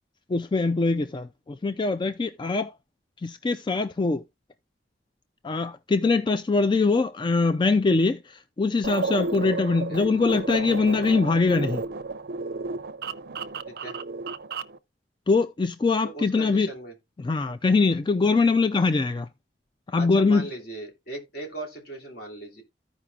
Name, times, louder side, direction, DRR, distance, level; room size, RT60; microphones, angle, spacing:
voice 1, 0.3-2.7 3.2-4.2 5.4-11.8 15.3-16.7 17.2-19.3 19.9-20.5, left 3 dB, 25° left, 0.3 m, -23 dB
sound 1, 8.8-14.8, right 4 dB, 60° right, 0.5 m, -32 dB
voice 2, 13.7-14.0 16.0-16.9 20.0-22.6, right 2 dB, 60° left, 2.9 m, -38 dB
15.0 x 5.0 x 2.4 m
head